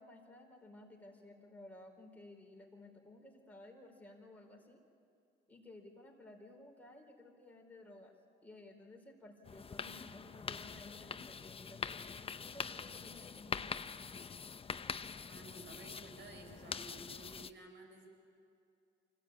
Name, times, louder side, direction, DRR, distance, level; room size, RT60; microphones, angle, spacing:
voice 1, 0.0-4.8 5.5-8.1 8.4-13.9, left 2 dB, 10° left, 0 dB, 4.5 m, -56 dB
sound 1, 9.4-17.5, left 5 dB, 30° left, 0.6 m, -44 dB
voice 2, 15.3-18.1, right 2 dB, 65° right, 3 dB, 5.1 m, -54 dB
24.5 x 17.0 x 8.9 m, 2.5 s
cardioid pair, 90°, 20 cm